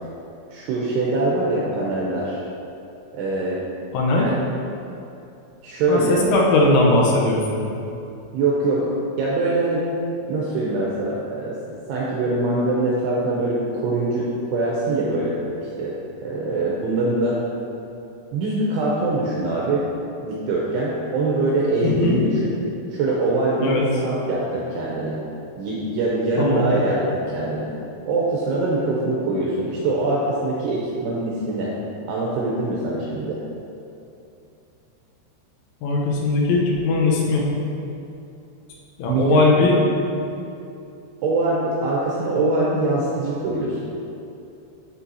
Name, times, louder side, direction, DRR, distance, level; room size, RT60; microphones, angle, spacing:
voice 1, 0.5-2.4 3.1-3.6 4.1-4.4 5.6-6.3 8.3-8.9 9.2-9.9 10.3-11.6 11.9-15.4 15.8-15.9 16.2-17.4 18.3-19.8 20.2-22.5 22.9-23.7 24.0-25.2 25.6-27.7 28.1-31.7 32.1-33.4 39.1-39.7 41.2-43.8, right 2 dB, 85° right, -5 dB, 2.4 m, -23 dB
voice 2, 3.9-4.3 5.9-7.7 21.9-22.2 23.6-23.8 26.4-26.7 35.8-37.5 39.0-39.8, left 2 dB, 85° left, -3 dB, 3.5 m, -19 dB
12.0 x 4.6 x 2.8 m, 2.8 s
omnidirectional pair, 5.6 m